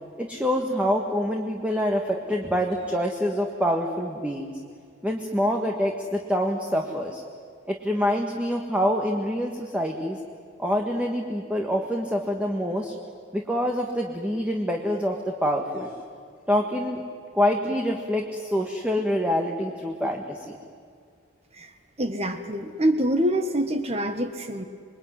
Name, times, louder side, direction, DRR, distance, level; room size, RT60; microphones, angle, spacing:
voice 1, 0.2-4.5 5.0-7.2 7.7-10.2 10.6-12.9 13.3-15.9 16.5-17.0 17.3-20.5, equal, 5° right, 1 dB, 1.7 m, -26 dB
voice 2, 22.0-24.6, right 1 dB, 30° right, 7 dB, 1.5 m, -25 dB
27.5 x 22.5 x 9.7 m, 2.1 s
head